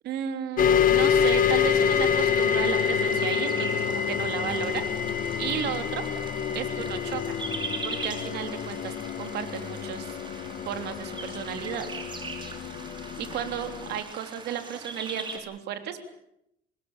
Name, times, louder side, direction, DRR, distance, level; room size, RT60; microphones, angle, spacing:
voice 1, 0.0-4.9 5.4-6.0 6.5-7.4 7.8-10.2 10.6-11.9 13.2-16.0, right 9 dB, 75° right, 7 dB, 3.3 m, -34 dB
sound 1, 0.6-14.0, left 7 dB, 55° left, 1.6 m, -27 dB
sound 2, 0.8-15.4, right 3 dB, 30° right, 5.4 m, -41 dB
26.0 x 20.5 x 7.4 m, 0.79 s
cardioid pair, 110°, 17 cm